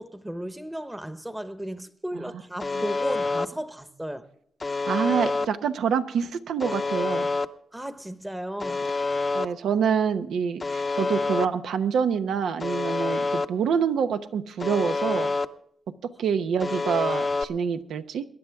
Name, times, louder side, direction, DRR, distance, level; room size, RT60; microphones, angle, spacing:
voice 1, 0.0-4.3 7.7-8.9, right 1 dB, 10° right, 1.0 m, -35 dB
Alarm, 2.6-3.5 4.6-5.5 6.6-7.5 8.6-9.5 10.6-11.5 12.6-13.5 14.6-15.5 16.6-17.4, left 3 dB, 30° left, 0.7 m, -27 dB
voice 2, 4.9-7.3 9.3-15.3 16.0-18.2, right 7 dB, 85° right, 0.9 m, -26 dB
23.0 x 10.5 x 3.6 m
cardioid pair, 85°, 0 cm